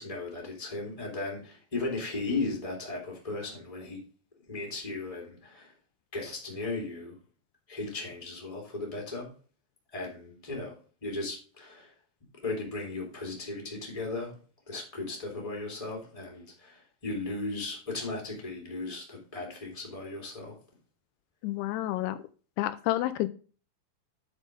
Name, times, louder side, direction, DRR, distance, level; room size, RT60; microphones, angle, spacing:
voice 1, 0.0-4.0 4.5-5.7 6.1-7.1 7.7-9.3 9.9-10.7 11.0-11.9 12.4-14.3 14.7-20.5, left 3 dB, 10° left, -1 dB, 2.4 m, -36 dB
voice 2, 21.4-22.2 22.6-23.3, left 15 dB, 85° left, 12 dB, 2.5 m, -29 dB
8.3 x 5.0 x 5.3 m, 0.38 s
omnidirectional pair, 4.6 m